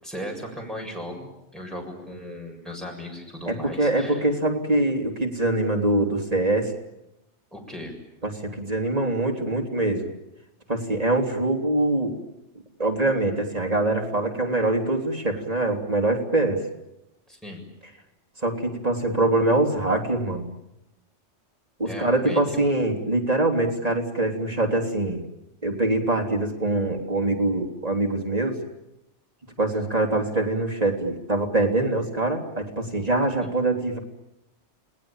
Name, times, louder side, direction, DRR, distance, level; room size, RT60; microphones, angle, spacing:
voice 1, 0.0-4.2 7.5-7.9 17.3-17.6 21.8-22.4, equal, ahead, 0 dB, 7.3 m, -37 dB
voice 2, 3.5-6.7 8.2-10.1 10.7-12.2 12.8-16.6 18.4-20.5 21.8-25.2 25.6-28.6 29.6-34.0, right 2 dB, 35° right, 2 dB, 3.4 m, -24 dB
29.5 x 19.5 x 8.9 m, 0.88 s
omnidirectional pair, 1.2 m